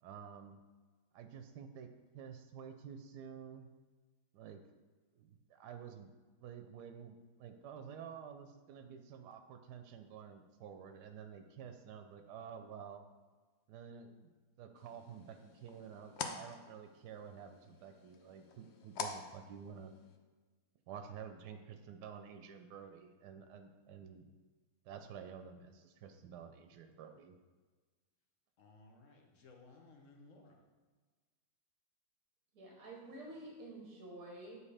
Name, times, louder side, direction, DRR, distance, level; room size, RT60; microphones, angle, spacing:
voice 1, 0.0-0.6 1.1-1.9 2.1-3.7 4.3-4.8 5.2-6.1 6.4-13.0 13.7-14.3 14.6-20.0 20.9-24.3 24.8-27.4, right 7 dB, 85° right, 7 dB, 1.2 m, -50 dB
sound 1, 14.8-20.2, left 5 dB, 70° left, 0.6 m, -47 dB
voice 2, 28.6-30.6, left 3 dB, 55° left, 1 dB, 1.2 m, -60 dB
voice 3, 32.5-34.6, right 1 dB, 60° right, -2 dB, 1.6 m, -49 dB
8.3 x 4.7 x 3.3 m, 1.4 s
omnidirectional pair, 1.7 m